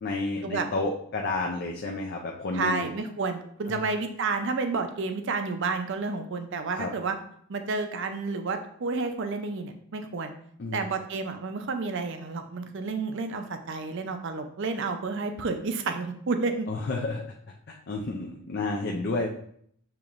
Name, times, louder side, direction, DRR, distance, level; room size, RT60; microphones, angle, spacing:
voice 1, 0.0-2.9 3.7-3.8 6.7-6.9 10.6-10.9 16.7-17.4 17.7-19.3, left 2 dB, 45° left, 0 dB, 0.4 m, -31 dB
voice 2, 2.5-7.2 7.5-10.3 10.7-16.7, right 4 dB, 55° right, 7 dB, 0.5 m, -30 dB
6.7 x 2.9 x 2.5 m, 0.65 s
head